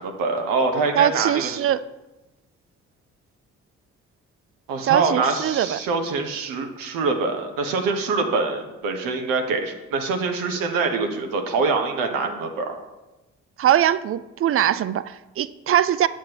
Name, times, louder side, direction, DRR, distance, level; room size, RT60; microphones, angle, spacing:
voice 1, 0.0-1.6 4.7-12.8, right 4 dB, 75° right, 4 dB, 0.9 m, -24 dB
voice 2, 1.0-1.8 4.8-5.8 13.6-16.1, right 11 dB, 40° right, 16 dB, 0.4 m, -21 dB
7.4 x 7.3 x 2.9 m, 1.0 s
hypercardioid pair, 45°, 34 cm